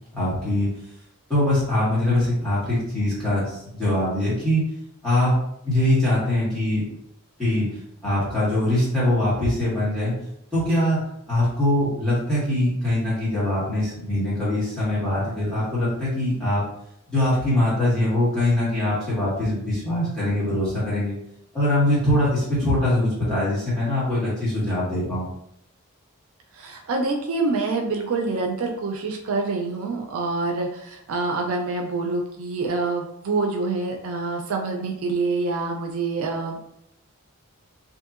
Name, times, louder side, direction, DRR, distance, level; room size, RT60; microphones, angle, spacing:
voice 1, 0.1-0.7 1.3-4.6 5.0-5.3 5.6-6.9 7.4-7.7 8.0-10.1 10.5-11.0 11.3-16.6 17.1-21.1 21.5-25.3, left 1 dB, 5° left, -11 dB, 1.4 m, -22 dB
voice 2, 26.5-36.6, right 3 dB, 75° right, 2 dB, 0.4 m, -26 dB
2.7 x 2.7 x 2.4 m, 0.77 s
head